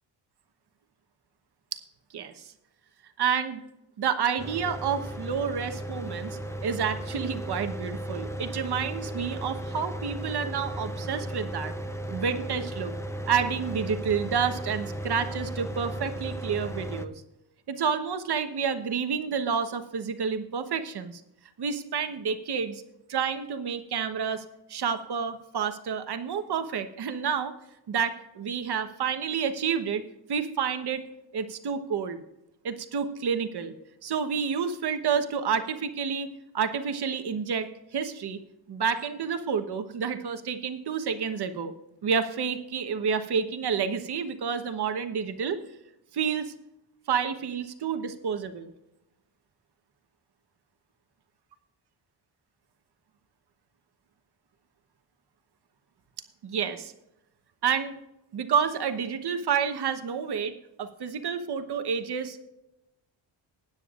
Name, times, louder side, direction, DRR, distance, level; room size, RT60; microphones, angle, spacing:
voice 1, 3.2-3.6 4.0-11.7 12.1-12.9 13.3-17.1 17.7-21.2 21.6-22.8 23.1-24.4 24.7-27.5 27.9-30.0 30.3-31.0 31.3-32.2 32.6-33.7 34.0-38.4 38.7-41.7 42.0-45.6 46.1-46.5 47.1-48.7 56.4-56.9 57.6-58.0 58.3-62.4, right 6 dB, 55° right, 8 dB, 1.2 m, -29 dB
Mechanical fan, 4.4-17.1, right 1 dB, 5° left, 0.6 m, -35 dB
20.5 x 9.5 x 2.5 m, 0.90 s
cardioid pair, 120°, 46 cm